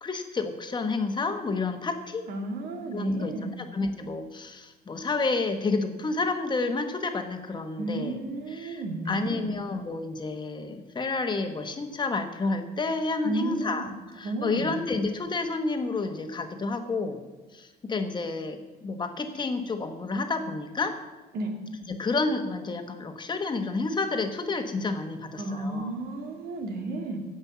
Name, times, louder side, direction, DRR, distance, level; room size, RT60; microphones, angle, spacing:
voice 1, 0.0-2.2 2.9-3.3 3.6-8.1 8.5-17.2 17.5-20.9 21.9-25.9, left 3 dB, 25° left, 7 dB, 1.4 m, -30 dB
voice 2, 2.3-3.5 7.8-9.5 13.2-13.9 14.2-14.7 21.3-21.5 25.4-27.2, right 2 dB, 65° right, 3 dB, 2.3 m, -32 dB
16.0 x 5.5 x 7.0 m, 1.2 s
cardioid pair, 110°, 17 cm